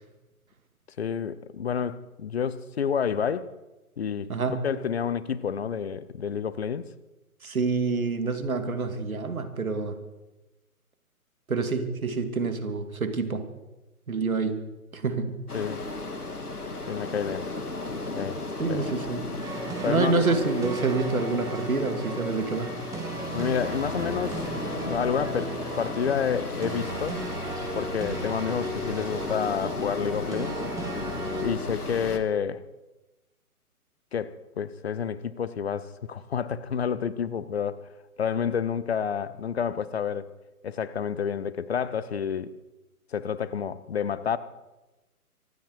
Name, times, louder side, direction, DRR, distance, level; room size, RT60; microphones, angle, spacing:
voice 1, 1.0-3.5 4.0-4.3 4.6-6.9 15.5-15.8 16.9-17.5 18.2-18.4 18.7-18.9 19.8-20.3 23.3-24.4 24.8-27.2 27.7-30.6 31.4-32.6 34.1-37.9 38.2-40.3 40.6-42.6 43.1-44.4, left 7 dB, 45° left, 1.0 m, -29 dB
voice 2, 4.3-4.7 7.4-10.0 11.5-13.5 14.1-14.6 14.9-15.4 18.6-19.3 19.9-22.7, right 4 dB, 65° right, 2.7 m, -27 dB
sound 1, 15.5-32.2, left 2 dB, 80° left, 2.2 m, -35 dB
sound 2, 19.4-31.5, right 1 dB, 5° right, 1.8 m, -36 dB
25.0 x 12.0 x 4.8 m
figure-of-eight pair, 135°, 45 cm